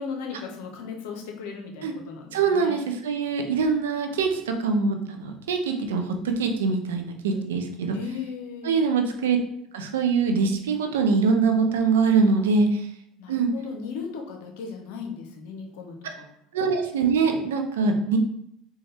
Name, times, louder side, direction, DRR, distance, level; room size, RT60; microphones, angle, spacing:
voice 1, 0.0-2.8 7.9-8.7 13.2-16.3, left 5 dB, 75° left, 3 dB, 0.7 m, -36 dB
voice 2, 2.3-8.0 8.6-9.4 9.7-12.9 13.3-13.5 16.0-16.1 16.5-18.2, right 4 dB, 85° right, 5 dB, 0.5 m, -23 dB
4.2 x 2.3 x 3.3 m, 0.73 s
hypercardioid pair, 80°, 0 cm